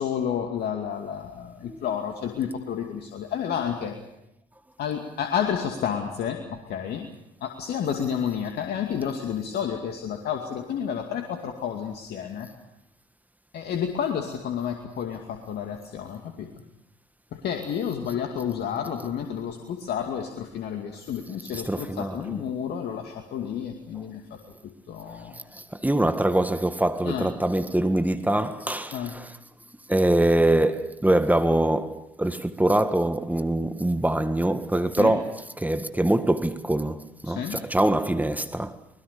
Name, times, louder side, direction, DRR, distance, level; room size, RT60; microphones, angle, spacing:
voice 1, 0.0-4.0 4.8-7.1 7.4-12.5 13.5-16.5 17.3-24.2 24.6-25.3 27.1-27.3 28.9-29.1 35.0-35.2 37.3-37.6, left 8 dB, 65° left, 2.4 m, -30 dB
voice 2, 21.5-22.4 25.5-29.4 29.9-38.8, right 1 dB, 10° right, 1.7 m, -24 dB
25.0 x 21.0 x 6.8 m
hypercardioid pair, 55°, 18 cm